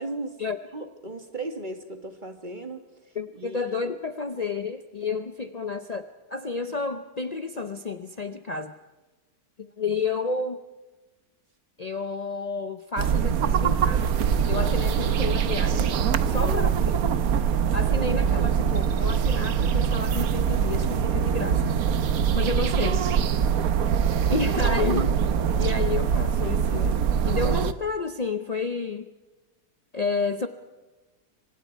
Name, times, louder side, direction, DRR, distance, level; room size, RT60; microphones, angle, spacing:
voice 1, 0.0-0.4 0.7-4.0 14.6-14.9 16.3-16.7 24.0-24.4, right 1 dB, 30° right, 6 dB, 1.8 m, -37 dB
voice 2, 3.2-8.7 9.6-10.6 11.8-14.1 14.5-16.0 16.3-16.9 17.7-21.8 22.3-23.1 24.3-25.2 25.6-29.1 29.9-30.5, left 4 dB, 70° left, 8 dB, 0.3 m, -30 dB
sound 1, 13.0-27.7, right 7 dB, 60° right, 1.2 m, -23 dB
26.5 x 24.0 x 4.6 m, 1.2 s
omnidirectional pair, 1.9 m